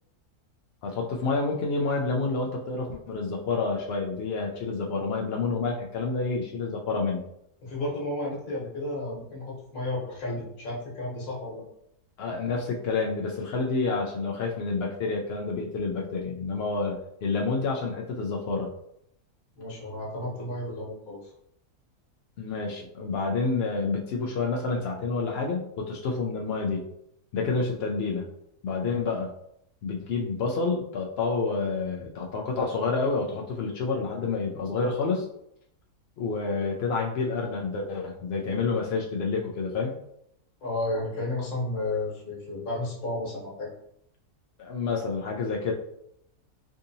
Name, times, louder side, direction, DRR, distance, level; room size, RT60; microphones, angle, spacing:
voice 1, 0.8-7.2 12.2-18.7 22.4-26.8 27.3-28.2 28.6-29.3 29.8-35.3 36.2-40.0 44.6-45.7, left 4 dB, 85° left, -1 dB, 0.5 m, -29 dB
voice 2, 7.6-11.6 19.6-21.3 40.6-43.7, left 2 dB, 70° left, -5 dB, 1.5 m, -32 dB
3.6 x 2.7 x 2.6 m, 0.75 s
omnidirectional pair, 1.6 m